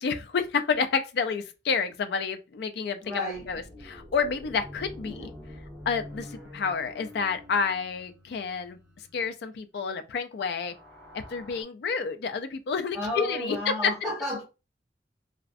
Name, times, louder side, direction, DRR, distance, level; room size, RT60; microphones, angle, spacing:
voice 1, 0.0-3.0 3.5-5.3 5.9-8.8 9.1-10.7 11.1-13.9, left 5 dB, 65° left, 0.3 m, -29 dB
voice 2, 3.0-3.5 5.0-5.3 12.9-14.4, left 1 dB, 5° right, 0.9 m, -32 dB
sound 1, 3.3-9.3 10.4-11.6, left 1 dB, 20° left, 1.4 m, -46 dB
2.5 x 2.0 x 2.5 m
head